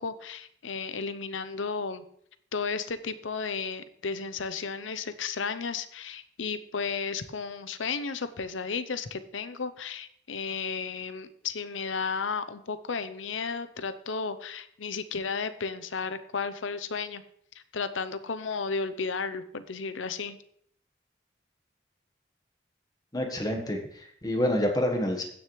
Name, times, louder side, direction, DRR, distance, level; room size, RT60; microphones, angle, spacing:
voice 1, 0.0-2.0 2.5-17.2 17.5-20.4, left 5 dB, 85° left, 12 dB, 0.7 m, -33 dB
voice 2, 23.1-25.2, left 1 dB, 20° left, 3 dB, 1.3 m, -28 dB
16.0 x 6.6 x 3.2 m, 0.65 s
head